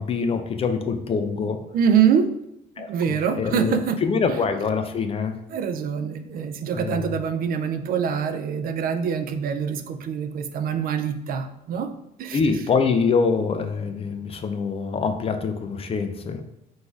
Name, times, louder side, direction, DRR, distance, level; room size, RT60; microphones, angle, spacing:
voice 1, 0.0-1.6 2.8-5.3 6.7-7.1 12.3-16.4, left 5 dB, 35° left, 8 dB, 0.5 m, -25 dB
voice 2, 1.7-2.3 2.8-4.0 5.5-11.9 12.2-12.4, right 7 dB, 60° right, 8 dB, 0.5 m, -24 dB
3.8 x 2.6 x 4.6 m, 0.82 s
cardioid pair, 110°, 17 cm